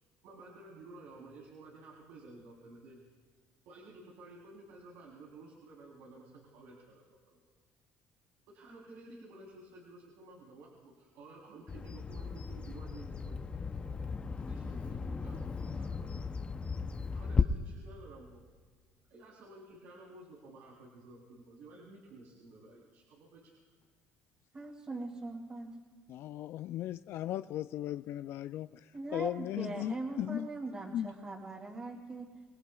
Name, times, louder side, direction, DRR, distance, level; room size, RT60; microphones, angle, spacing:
voice 1, 0.2-3.0 3.6-7.4 8.5-13.4 14.0-14.1 14.5-16.2 17.1-18.4 19.1-23.5, right 2 dB, 85° right, -3 dB, 3.5 m, -53 dB
Bird vocalization bird call bird song, 11.7-17.4, left 5 dB, 25° left, 0.6 m, -36 dB
voice 2, 24.5-25.7 28.9-32.3, right 2 dB, 30° right, -3 dB, 2.4 m, -41 dB
voice 3, 26.1-30.5 30.9-31.1, left 12 dB, 60° left, 13 dB, 0.3 m, -37 dB
26.5 x 19.0 x 2.4 m, 1.5 s
cardioid pair, 130°, 5 cm